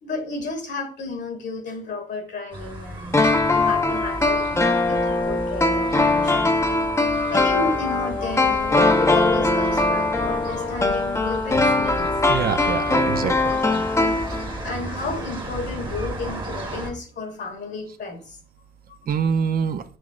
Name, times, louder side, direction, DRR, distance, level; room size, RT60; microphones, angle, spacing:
voice 1, 0.0-6.5 7.3-12.1 13.5-14.0 14.6-18.4 18.9-19.3, left 3 dB, 65° left, 1.5 m, -32 dB
sound 1, 2.5-16.9, right 1 dB, 25° right, 1.2 m, -35 dB
sound 2, 3.1-14.8 15.0-15.1, left 2 dB, 15° left, 0.7 m, -21 dB
voice 2, 12.3-13.5 19.1-19.8, right 7 dB, 50° right, 0.5 m, -24 dB
6.1 x 3.0 x 2.4 m
cardioid pair, 90°, 20 cm